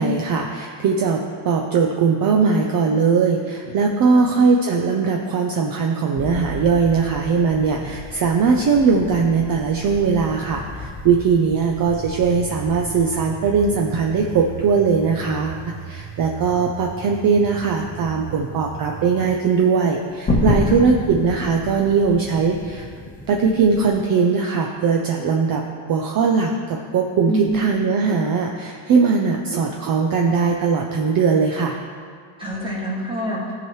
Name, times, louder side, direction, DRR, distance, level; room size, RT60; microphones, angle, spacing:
voice 1, 0.0-22.9 23.3-25.6 25.9-31.7, right 5 dB, 45° right, 1 dB, 0.7 m, -20 dB
sound 1, 6.2-24.0, left 2 dB, 15° left, 1.0 m, -32 dB
sound 2, 11.8-19.2, right 8 dB, 80° right, 0.7 m, -37 dB
voice 2, 20.5-21.0 27.3-27.7 32.4-33.4, right 1 dB, 10° right, -5 dB, 2.0 m, -26 dB
14.5 x 4.9 x 3.1 m, 2.1 s
cardioid pair, 125°, 49 cm